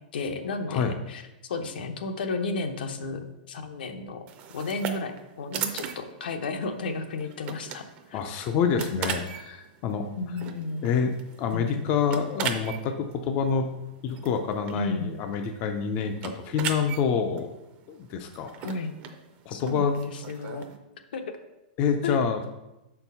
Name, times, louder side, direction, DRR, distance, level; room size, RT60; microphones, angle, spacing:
voice 1, 0.1-3.2 3.5-4.2 4.5-8.2 10.2-10.9 11.5-11.9 14.7-15.1 18.6-18.9 19.5-20.6 21.1-21.4 22.0-22.2, left 3 dB, 75° left, 7 dB, 0.9 m, -33 dB
sound 1, 4.3-20.8, right 8 dB, 25° right, 0.5 m, -39 dB
voice 2, 8.1-10.1 10.8-11.1 11.4-13.7 14.0-17.5 17.9-18.7 19.5-20.0 21.8-22.5, left 6 dB, 25° left, 5 dB, 0.4 m, -27 dB
6.3 x 4.5 x 5.4 m, 0.96 s
supercardioid pair, 170°, 5 cm